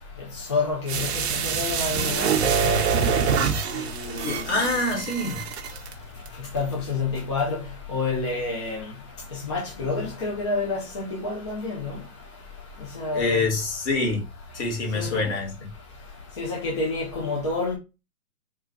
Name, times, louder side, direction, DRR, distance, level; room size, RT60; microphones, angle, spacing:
voice 1, 0.2-3.0 3.7-4.5 6.1-12.3 12.7-13.5 14.9-15.3 16.1-17.8, left 3 dB, 20° left, 0.5 m, -29 dB
sound 1, 0.9-5.9 6.3-6.4, right 6 dB, 45° right, 0.7 m, -25 dB
voice 2, 4.2-5.5 13.1-14.2 14.5-15.5, left 3 dB, 50° left, 2.0 m, -25 dB
3.7 x 2.3 x 3.8 m
hypercardioid pair, 130°, 45 cm